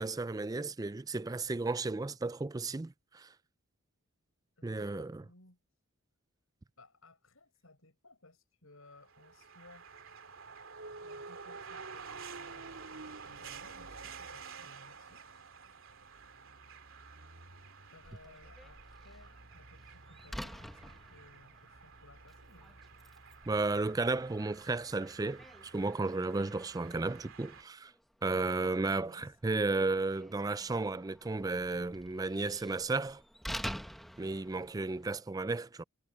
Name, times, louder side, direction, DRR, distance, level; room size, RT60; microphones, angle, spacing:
voice 1, 0.0-3.3 4.6-5.2 23.5-27.9 28.2-33.2 34.2-35.8, right 3 dB, 15° right, 0.3 m, -33 dB
voice 2, 4.6-5.6 6.8-9.9 11.0-15.5 17.9-22.8 28.6-29.8, left 2 dB, 75° left, 7.0 m, -60 dB
sound 1, 9.0-27.6, right 5 dB, 65° right, 2.9 m, -50 dB
Slam, 18.0-35.2, equal, ahead, 1.4 m, -49 dB
head